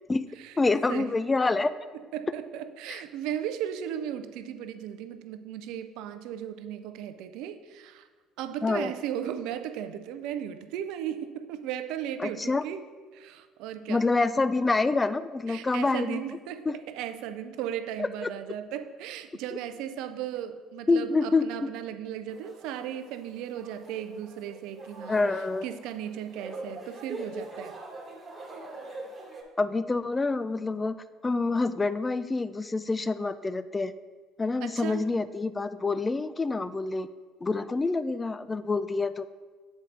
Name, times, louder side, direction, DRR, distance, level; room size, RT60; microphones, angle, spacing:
voice 1, 0.6-1.7 2.9-3.0 8.6-8.9 12.2-12.6 13.9-16.2 16.7-16.8 18.0-18.3 20.9-21.5 25.1-25.6 29.6-31.0 31.2-33.9 34.4-37.1 37.4-39.2, left 3 dB, 25° left, 14 dB, 0.3 m, -27 dB
voice 2, 2.1-8.1 8.4-12.8 13.1-14.1 15.5-25.2 25.6-27.8 34.6-35.0, right 10 dB, 70° right, 10 dB, 0.4 m, -36 dB
sound 1, 22.3-29.4, right 2 dB, 35° right, 1.3 m, -43 dB
7.3 x 4.5 x 3.8 m, 1.5 s
hypercardioid pair, 60°, 0 cm